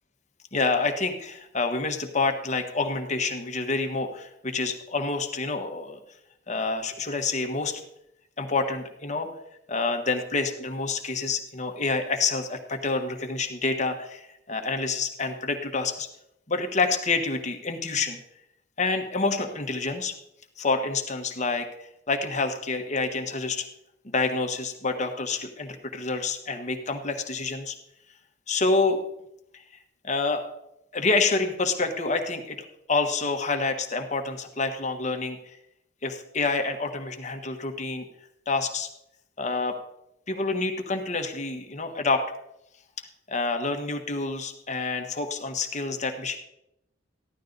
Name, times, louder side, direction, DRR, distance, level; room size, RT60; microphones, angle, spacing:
voice 1, 0.5-6.0 6.5-7.8 8.4-9.3 9.7-16.1 16.5-18.2 18.8-20.1 20.6-21.7 22.1-23.6 24.0-27.7 28.5-29.0 29.5-29.6 30.0-30.4 30.9-35.6 36.0-38.1 38.5-38.9 39.4-39.8 40.3-42.2 43.3-46.4, left 3 dB, 40° left, 5 dB, 1.3 m, -28 dB
15.0 x 11.5 x 4.0 m, 0.82 s
head